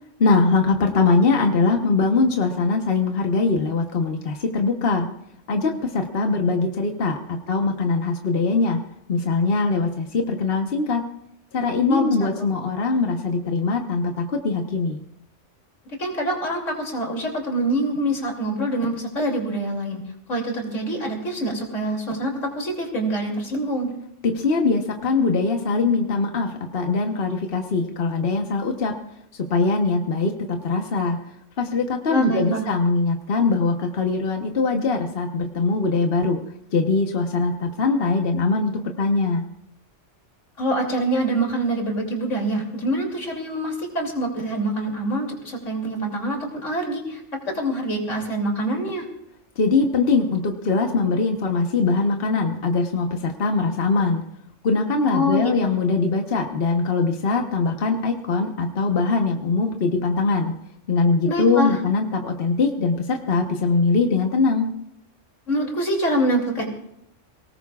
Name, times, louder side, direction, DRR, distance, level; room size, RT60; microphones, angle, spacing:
voice 1, 0.2-5.1 5.5-8.8 9.1-11.0 11.5-15.0 24.2-28.9 29.5-31.2 31.6-36.4 36.7-38.7 39.0-39.4 49.6-54.2 54.6-60.5 60.9-64.7, left 4 dB, 50° left, 3 dB, 1.3 m, -22 dB
voice 2, 11.9-12.5 16.0-20.0 20.3-23.9 32.1-32.6 40.6-47.2 47.5-49.0 55.1-55.7 61.2-61.8 65.5-66.7, right 1 dB, 80° left, 0 dB, 3.3 m, -25 dB
23.5 x 18.5 x 2.4 m, 0.77 s
omnidirectional pair, 1.3 m